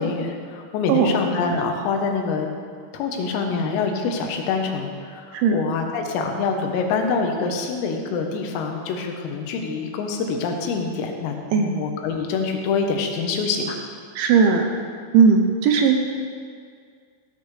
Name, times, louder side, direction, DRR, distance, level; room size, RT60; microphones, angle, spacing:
voice 1, 0.0-2.5 2.9-13.8, left 4 dB, 85° left, 3 dB, 3.9 m, -25 dB
voice 2, 5.3-5.6 11.5-11.7 14.2-14.7 15.1-16.0, right 5 dB, 80° right, 3 dB, 2.9 m, -17 dB
16.5 x 13.0 x 3.4 m, 2.1 s
omnidirectional pair, 5.9 m